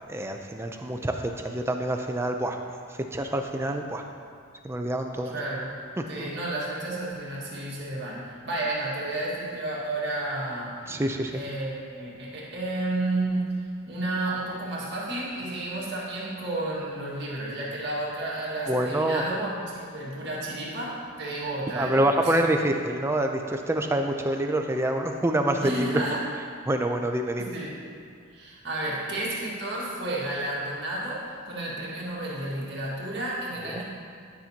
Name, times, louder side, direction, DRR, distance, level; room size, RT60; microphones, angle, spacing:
voice 1, 0.1-2.6 3.1-4.0 4.6-5.3 6.0-6.3 10.9-11.3 18.6-19.2 21.8-25.9 26.7-27.5 33.7-33.8, right 1 dB, 10° right, 4 dB, 0.4 m, -26 dB
voice 2, 5.2-5.7 6.1-10.7 11.3-13.5 13.9-22.3 25.6-26.2 27.4-27.7 28.3-31.2 31.5-33.8, right 1 dB, 55° right, -6 dB, 1.8 m, -31 dB
10.5 x 5.9 x 2.8 m, 2.2 s
head